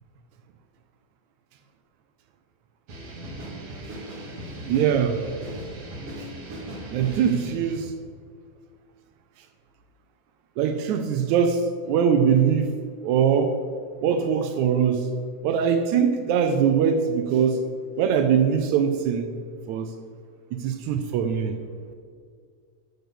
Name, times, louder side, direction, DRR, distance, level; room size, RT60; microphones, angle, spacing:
sound 1, 2.9-7.9, right 1 dB, 55° right, 2.9 m, -38 dB
voice 1, 4.7-5.2 6.2-6.3 6.9-8.0 10.6-12.7 13.0-13.6 14.0-15.1 15.4-17.7 18.0-19.3 19.7-19.9 20.5-21.6, right 7 dB, 80° right, 7 dB, 2.0 m, -22 dB
12.0 x 6.6 x 6.8 m, 2.1 s
omnidirectional pair, 3.4 m